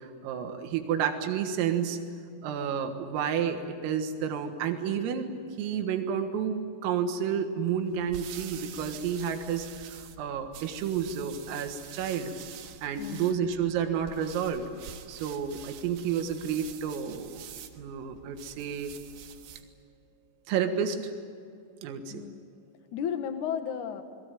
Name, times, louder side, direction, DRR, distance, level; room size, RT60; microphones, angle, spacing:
voice 1, 0.0-2.0 2.4-5.3 5.6-12.3 12.8-14.7 15.1-17.5 17.8-18.9 20.5-21.1 21.8-22.3, right 8 dB, 90° right, 6 dB, 4.2 m, -30 dB
sound 1, 7.8-19.7, right 9 dB, 70° right, 3.2 m, -47 dB
voice 2, 13.0-13.4 22.1-22.4 22.9-24.0, left 8 dB, 65° left, 7 dB, 2.1 m, -34 dB
28.5 x 21.0 x 9.2 m, 2.3 s
omnidirectional pair, 5.8 m